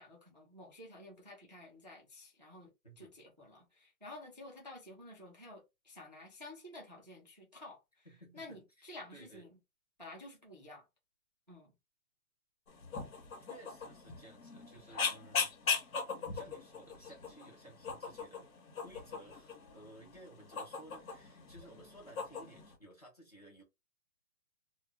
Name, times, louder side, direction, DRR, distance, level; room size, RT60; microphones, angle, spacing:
voice 1, 0.0-2.7 3.0-8.1 8.3-9.6 10.0-10.9 11.5-11.7, left 1 dB, 30° right, 0.4 m, -51 dB
voice 2, 2.8-3.1 8.1-9.5 13.5-15.5 16.0-18.5 18.8-23.6, right 1 dB, 25° left, 0.6 m, -57 dB
sound 1, 12.7-22.8, left 5 dB, 65° left, 0.9 m, -40 dB
2.1 x 2.0 x 3.3 m
hypercardioid pair, 175°, 45 cm